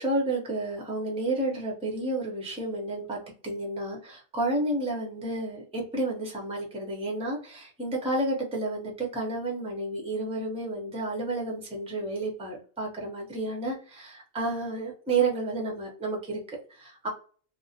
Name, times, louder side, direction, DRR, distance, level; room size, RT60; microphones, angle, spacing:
voice 1, 0.0-17.1, right 2 dB, 5° right, -1 dB, 0.5 m, -31 dB
2.4 x 2.0 x 2.7 m, 0.41 s
omnidirectional pair, 1.4 m